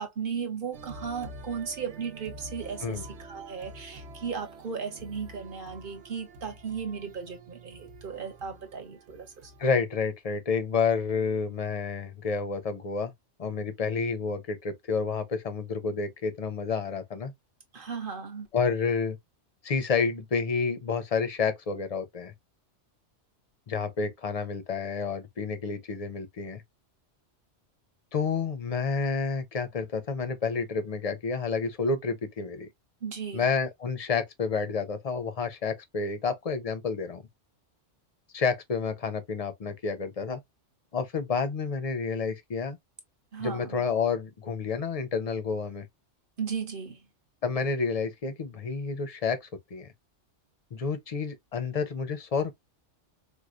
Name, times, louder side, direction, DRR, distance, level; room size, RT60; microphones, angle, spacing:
voice 1, 0.0-9.5 17.7-18.5 33.0-33.5 43.3-43.9 46.4-47.1, right 6 dB, 50° right, 1.1 m, -36 dB
sound 1, 0.7-9.7, right 2 dB, 70° right, 0.9 m, -47 dB
voice 2, 9.6-13.1 13.4-17.3 18.5-19.2 19.6-22.3 23.7-26.6 28.1-32.7 33.3-37.2 38.3-40.4 40.9-42.8 43.4-45.9 47.4-49.9 50.7-52.5, left 5 dB, 45° left, 0.5 m, -29 dB
4.5 x 2.2 x 2.4 m
omnidirectional pair, 1.2 m